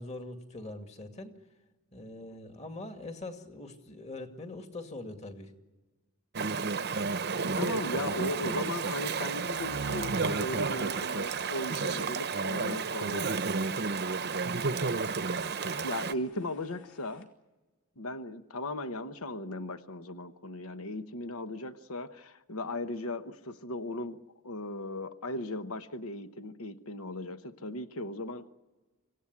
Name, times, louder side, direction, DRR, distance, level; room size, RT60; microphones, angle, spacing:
voice 1, 0.0-1.3 1.9-5.5, left 2 dB, 30° left, 5 dB, 2.3 m, -42 dB
Chatter / Stream, 6.3-16.1, right 4 dB, 45° right, 0.7 m, -31 dB
voice 2, 7.4-13.9 15.8-17.3 18.0-28.5, left 1 dB, 85° left, 9 dB, 1.1 m, -37 dB
sound 1, 7.5-17.2, left 1 dB, 55° left, 3.5 m, -53 dB
sound 2, 9.5-13.2, right 3 dB, 90° right, 0.8 m, -44 dB
26.5 x 17.0 x 9.8 m, 1.2 s
head